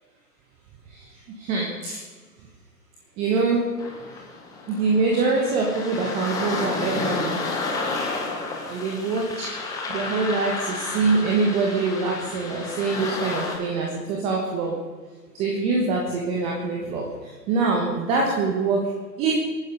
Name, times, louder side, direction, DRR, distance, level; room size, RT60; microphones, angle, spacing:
voice 1, 1.4-2.0 3.2-3.8 4.7-7.4 8.7-9.5 9.9-14.8 15.3-19.3, right 4 dB, 10° right, -1 dB, 1.2 m, -24 dB
sound 1, 3.8-13.6, left 3 dB, 5° left, 1.4 m, -31 dB
23.0 x 9.6 x 5.4 m, 1.5 s
figure-of-eight pair, 135°, 50 cm